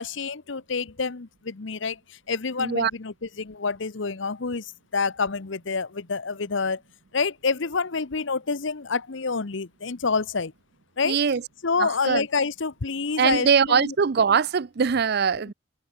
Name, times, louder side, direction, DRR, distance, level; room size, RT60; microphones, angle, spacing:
voice 1, 0.0-6.8 7.1-10.5 11.0-11.2 11.6-13.9, left 4 dB, 60° left, 0.9 m, -28 dB
voice 2, 2.6-2.9 11.0-11.4 11.8-12.3 13.2-15.5, right 6 dB, 50° right, 0.5 m, -22 dB
head